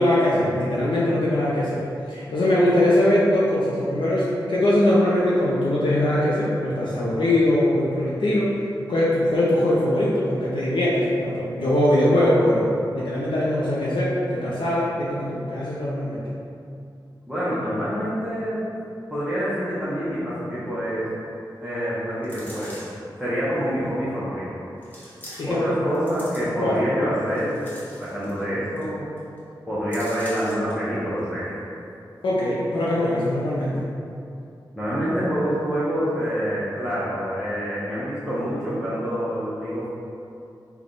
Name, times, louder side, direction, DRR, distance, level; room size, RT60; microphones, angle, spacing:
voice 1, 0.0-1.8 2.1-8.5 8.9-16.2 25.4-25.6 26.6-27.1 32.2-33.9, left 1 dB, 80° left, -7 dB, 0.5 m, -21 dB
voice 2, 17.3-18.6 19.1-21.1 21.6-22.8 23.2-24.5 25.4-27.6 28.0-29.1 29.7-31.6 34.8-39.9, equal, ahead, -12 dB, 0.8 m, -26 dB
sound 1, 22.2-23.1 23.8-23.9 24.8-25.7 25.9-26.8 27.3-28.4 28.8-28.9 29.2-29.4 29.9-30.7 31.2-31.3, left 1 dB, 20° left, 1.0 m, -43 dB
3.4 x 2.2 x 3.8 m, 2.6 s
wide cardioid pair, 80°, 8 cm